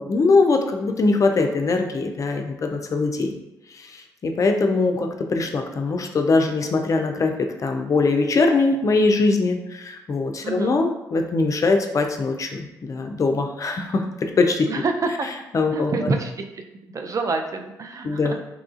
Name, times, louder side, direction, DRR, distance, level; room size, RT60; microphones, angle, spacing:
voice 1, 0.0-3.3 3.7-14.7 15.5-15.9 18.0-18.4, left 3 dB, 45° left, 4 dB, 0.4 m, -22 dB
voice 2, 10.4-10.7 14.7-15.3 15.7-16.4 16.9-18.4, right 3 dB, 45° right, 4 dB, 0.4 m, -26 dB
3.0 x 2.4 x 2.4 m, 0.92 s
supercardioid pair, 50°, 8 cm